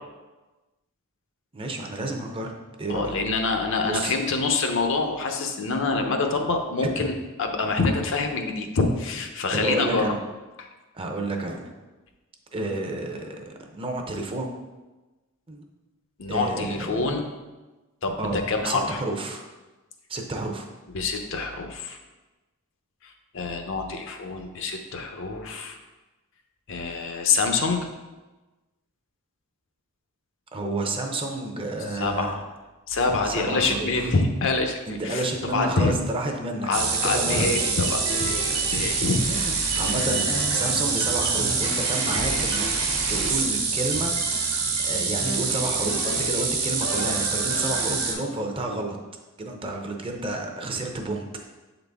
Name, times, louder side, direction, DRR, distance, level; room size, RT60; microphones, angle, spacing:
voice 1, 1.5-3.1 3.8-4.1 7.0-7.1 9.5-10.2 10.9-11.7 12.5-14.5 15.5-15.6 16.3-17.2 18.2-19.5 20.1-20.7 30.5-32.3 33.2-34.1 34.9-37.5 39.3-42.7 43.1-44.4 44.8-49.0 49.4-51.5, right 2 dB, 25° right, 2 dB, 0.6 m, -30 dB
voice 2, 2.9-10.2 10.6-10.7 16.2-17.3 18.0-19.0 20.9-22.0 23.0-25.8 26.7-27.9 31.9-32.4 32.9-35.9 36.6-39.2 39.7-40.4, left 3 dB, 60° left, 5 dB, 0.6 m, -26 dB
sound 1, 36.7-48.1, right 4 dB, 70° right, 1.2 m, -25 dB
7.1 x 3.9 x 3.5 m, 1.2 s
head